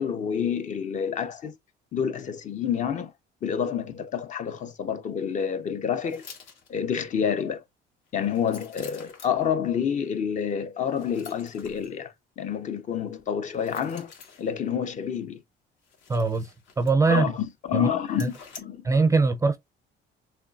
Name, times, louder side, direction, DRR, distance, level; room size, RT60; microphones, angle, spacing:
voice 1, 0.0-1.6 1.9-3.1 3.4-6.2 6.7-7.6 8.1-14.1 14.4-15.4 17.1-18.9, left 8 dB, 40° left, 0.6 m, -28 dB
sound 1, 6.0-7.0 8.1-9.4 10.9-12.0 13.5-14.6 15.8-17.2 17.5-17.6 18.1-18.6, left 5 dB, 70° left, 1.8 m, -48 dB
voice 2, 16.1-16.5 16.8-17.3 17.7-17.9 18.2-18.3 18.8-19.6, right 4 dB, 15° right, 0.4 m, -22 dB
6.4 x 3.2 x 2.3 m
cardioid pair, 160°, 20 cm